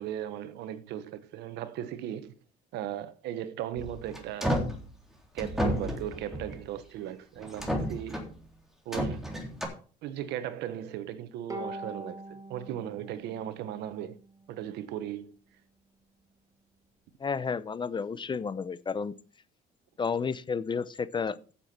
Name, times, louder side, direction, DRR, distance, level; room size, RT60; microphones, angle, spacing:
voice 1, 0.0-2.3 2.7-4.7 5.3-8.2 8.8-9.3 10.0-14.2 14.5-15.4, right 11 dB, 85° right, 1.2 m, -37 dB
sound 1, 3.8-4.8 5.4-6.7 7.4-8.4 8.9-9.6, equal, ahead, 3.5 m, -31 dB
Bowed string instrument, 11.5-14.8, right 1 dB, 20° right, 2.1 m, -43 dB
voice 2, 17.2-19.1 20.0-21.5, left 5 dB, 30° left, 0.7 m, -31 dB
15.0 x 7.1 x 4.4 m
cardioid pair, 110°, 17 cm